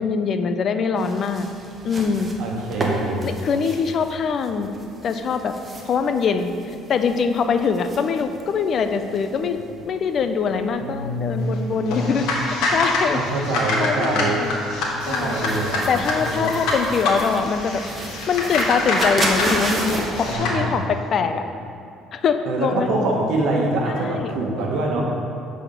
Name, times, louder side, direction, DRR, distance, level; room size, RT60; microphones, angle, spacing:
voice 1, 0.0-1.5 1.8-2.3 3.2-4.7 5.0-5.6 5.8-9.6 9.8-13.2 13.8-14.6 15.1-15.4 15.9-17.8 18.3-21.4 22.1-22.9 23.9-24.3, left 5 dB, 45° left, 8 dB, 0.4 m, -23 dB
sound 1, 1.0-20.3, right 1 dB, 25° right, 0.9 m, -34 dB
voice 2, 2.4-3.3 10.8-12.3 13.1-14.4 15.1-16.5 20.2-20.8 22.5-25.0, right 2 dB, 75° right, -1 dB, 1.2 m, -25 dB
sound 2, 11.9-20.6, left 2 dB, 75° left, 1.3 m, -25 dB
7.2 x 4.2 x 5.4 m, 2.6 s
cardioid pair, 120°, 0 cm